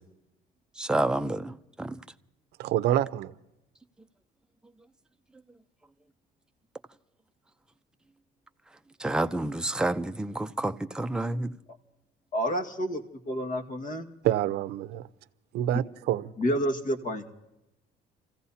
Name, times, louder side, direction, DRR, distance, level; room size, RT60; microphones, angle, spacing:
voice 1, 0.8-2.0 9.0-11.5, right 2 dB, 5° right, 0.6 m, -29 dB
voice 2, 2.6-3.3 14.2-15.1 15.5-16.3, right 12 dB, 75° right, 0.7 m, -27 dB
voice 3, 12.3-14.1 16.4-17.2, equal, 50° left, 1.8 m, -29 dB
30.0 x 15.5 x 2.8 m
cardioid pair, 110°, 17 cm